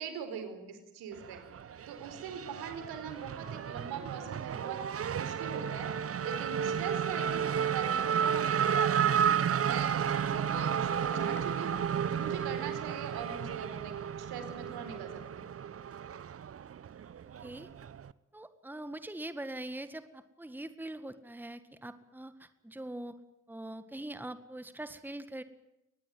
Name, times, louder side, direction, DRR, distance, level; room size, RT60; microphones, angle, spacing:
voice 1, 0.0-1.4 1.9-4.8 5.2-5.9 6.2-9.3 9.6-11.8 12.1-15.5, right 7 dB, 65° right, 9 dB, 4.5 m, -42 dB
Race car auto racing / Accelerating revving vroom, 1.1-18.1, right 8 dB, 35° right, 1.0 m, -32 dB
Guitar, 10.1-12.9, left 2 dB, 25° left, 1.6 m, -48 dB
voice 2, 18.3-23.2 23.5-25.4, right 1 dB, 5° right, 12 dB, 1.9 m, -42 dB
23.5 x 20.5 x 9.3 m, 0.90 s
figure-of-eight pair, 45°, 41 cm